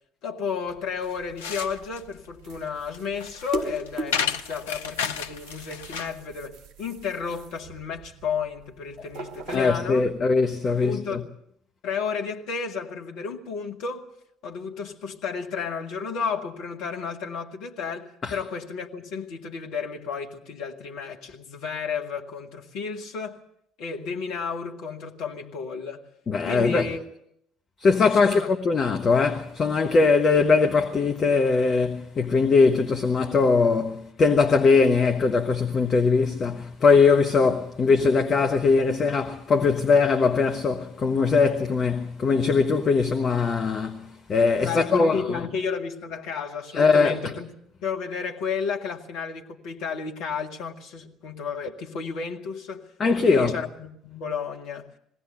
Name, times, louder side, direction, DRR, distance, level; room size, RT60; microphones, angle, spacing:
voice 1, 0.2-10.1 10.7-11.3 11.8-14.1 14.4-23.4 23.8-26.0 26.4-27.1 28.2-28.5 44.6-47.5 47.8-52.9 53.2-54.9, left 5 dB, 55° left, 1.7 m, -32 dB
sound 1, 0.6-10.2, right 2 dB, 45° right, 3.2 m, -40 dB
sound 2, 1.0-6.2, left 7 dB, 70° left, 0.7 m, -32 dB
voice 2, 9.5-11.2 18.2-18.4 26.3-26.9 27.8-45.2 46.7-47.1 53.0-53.6, left 4 dB, 35° left, 1.4 m, -21 dB
21.0 x 16.5 x 7.9 m
figure-of-eight pair, 55°, 0 cm